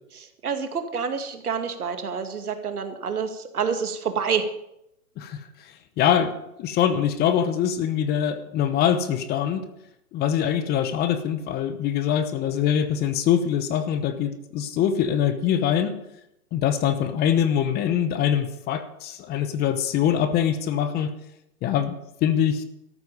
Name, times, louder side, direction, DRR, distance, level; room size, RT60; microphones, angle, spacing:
voice 1, 0.1-4.5, right 6 dB, 80° right, 6 dB, 2.2 m, -28 dB
voice 2, 5.2-5.5 6.0-6.3 6.6-9.7 10.1-16.0 16.5-21.1 21.6-22.6, left 9 dB, 20° left, 11 dB, 0.9 m, -23 dB
13.5 x 12.0 x 5.5 m, 0.81 s
hypercardioid pair, 120°, 44 cm